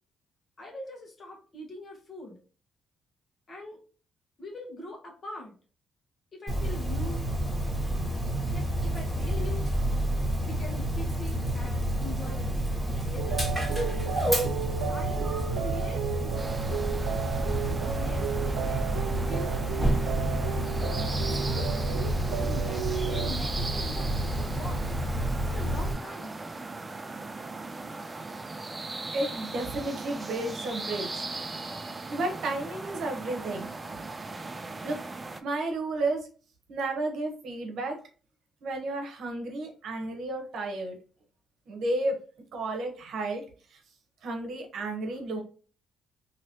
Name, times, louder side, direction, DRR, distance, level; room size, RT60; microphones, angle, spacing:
voice 1, 0.6-2.4 3.5-3.8 4.4-5.5 6.3-7.2 8.5-9.7 10.4-13.5 14.7-16.7 17.7-18.8 19.1-20.1 20.9-22.2 22.4-24.9 25.4-26.4, left 1 dB, 40° left, 1 dB, 1.2 m, -43 dB
Dog, 6.5-25.9, right 1 dB, ahead, 1.5 m, -29 dB
sound 1, 13.2-23.3, right 9 dB, 90° right, 0.3 m, -35 dB
sound 2, 16.4-35.4, right 3 dB, 25° right, 0.4 m, -38 dB
voice 2, 29.1-33.7 34.8-35.0 35.4-36.3 36.7-38.0 38.6-41.0 41.7-42.2 42.5-43.4 43.7-43.8 44.2-45.4, right 2 dB, 70° right, 3 dB, 0.9 m, -32 dB
2.9 x 2.9 x 2.8 m, 0.39 s
cardioid pair, 90°, 0 cm